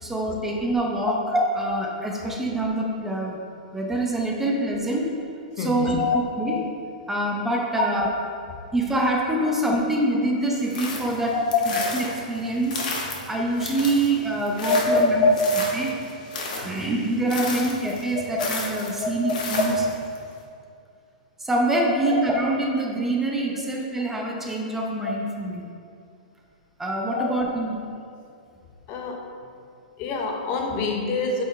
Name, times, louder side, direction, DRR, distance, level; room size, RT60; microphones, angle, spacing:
voice 1, 0.0-3.4 3.7-5.1 5.6-6.6 7.1-8.0 8.7-11.4 11.7-12.8 13.3-15.3 15.7-16.0 16.5-19.8 21.4-25.6 26.8-27.8, right 1 dB, 5° right, -1 dB, 0.7 m, -25 dB
voice 2, 5.6-6.2 7.8-7.9 8.5-8.7 11.3-11.4 11.8-11.9 14.6-15.7 19.0-19.1 27.1-27.3 28.9-29.3 30.0-31.4, left 3 dB, 35° left, 3 dB, 0.7 m, -24 dB
sound 1, 10.5-20.2, left 3 dB, 65° left, 1.4 m, -33 dB
8.6 x 4.5 x 3.2 m, 2.4 s
hypercardioid pair, 145°, 4 cm